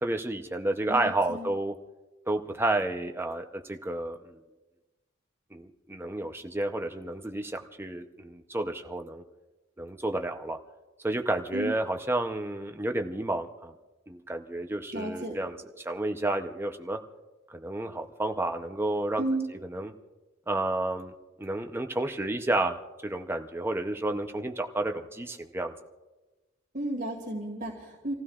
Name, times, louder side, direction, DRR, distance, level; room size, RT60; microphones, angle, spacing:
voice 1, 0.0-1.7 2.3-4.4 5.5-9.2 9.8-10.6 11.0-13.7 14.1-17.0 17.5-19.9 20.5-25.7, right 2 dB, 10° right, 5 dB, 0.6 m, -31 dB
voice 2, 0.9-1.5 11.5-11.7 14.9-15.4 19.2-19.5 26.7-28.1, right 1 dB, 40° right, -1 dB, 2.2 m, -33 dB
29.0 x 15.5 x 2.4 m, 1.1 s
head